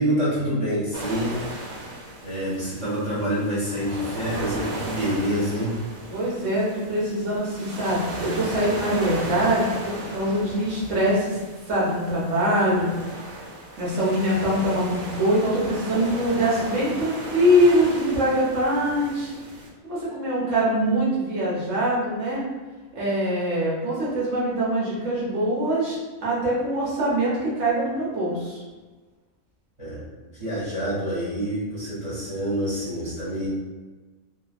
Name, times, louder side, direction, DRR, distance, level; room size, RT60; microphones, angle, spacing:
voice 1, 0.0-1.4 2.2-5.8 29.8-30.1 30.4-33.5, equal, 25° right, -10 dB, 0.9 m, -27 dB
sound 1, 0.9-19.7, right 2 dB, 85° right, 1.1 m, -36 dB
voice 2, 6.1-11.4 11.7-12.9 13.8-19.3 19.8-22.4 22.9-28.6, equal, 65° right, -6 dB, 1.3 m, -23 dB
3.1 x 2.3 x 2.4 m, 1.3 s
omnidirectional pair, 1.4 m